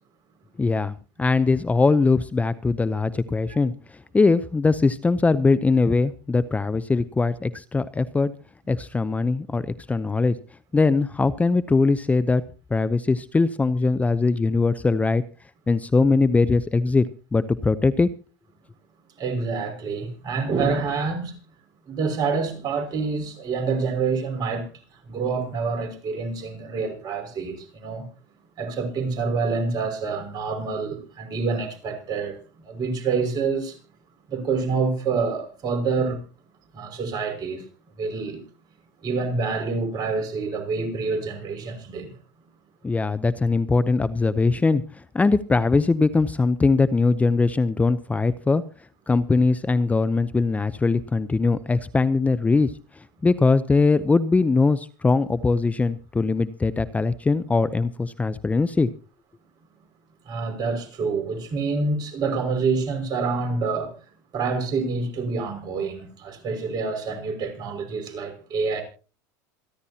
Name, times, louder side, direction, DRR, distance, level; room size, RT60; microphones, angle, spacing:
voice 1, 0.6-8.3 8.7-10.4 10.7-12.4 12.7-15.2 15.7-17.1 17.3-18.1 42.8-48.6 49.1-58.9, left 3 dB, 15° left, 0.7 m, -21 dB
voice 2, 19.2-21.4 21.9-24.7 25.1-28.1 28.6-33.8 34.3-36.2 36.7-37.6 38.0-38.4 39.0-42.1 60.3-63.9 64.3-68.8, right 4 dB, 45° right, 5.8 m, -27 dB
27.5 x 11.5 x 2.9 m
supercardioid pair, 100°, 10 cm